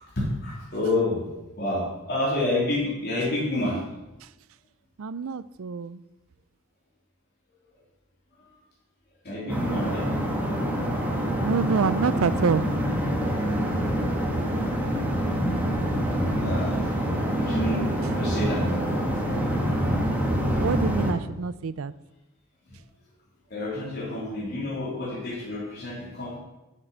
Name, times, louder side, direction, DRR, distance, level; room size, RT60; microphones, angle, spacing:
voice 1, 0.1-1.3 1.6-3.8 9.2-10.0 16.4-16.8 17.4-17.8 18.2-18.6 23.5-26.4, left 2 dB, 50° left, -4 dB, 3.4 m, -28 dB
voice 2, 5.0-6.0 11.4-12.7 20.5-21.9, right 5 dB, 80° right, 17 dB, 0.4 m, -26 dB
sound 1, 9.5-21.1, equal, 10° right, 1.5 m, -26 dB
7.5 x 7.4 x 7.9 m, 1.0 s
head